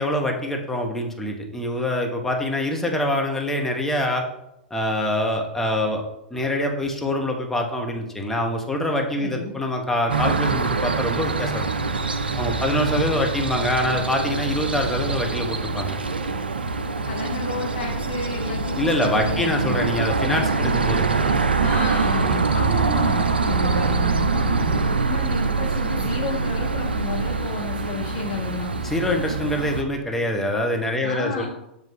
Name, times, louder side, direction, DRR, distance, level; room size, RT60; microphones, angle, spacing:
voice 1, 0.0-4.2 4.7-6.0 6.3-11.7 12.4-16.0 18.7-21.0 28.8-31.5, left 1 dB, 5° left, 1 dB, 1.1 m, -25 dB
voice 2, 9.1-9.5 17.1-19.8 21.6-28.7 31.0-31.5, left 4 dB, 60° left, -1 dB, 1.1 m, -31 dB
sound 1, 10.1-29.8, right 4 dB, 80° right, 0.4 m, -24 dB
7.4 x 2.6 x 5.8 m, 0.85 s
figure-of-eight pair, 95°, 5 cm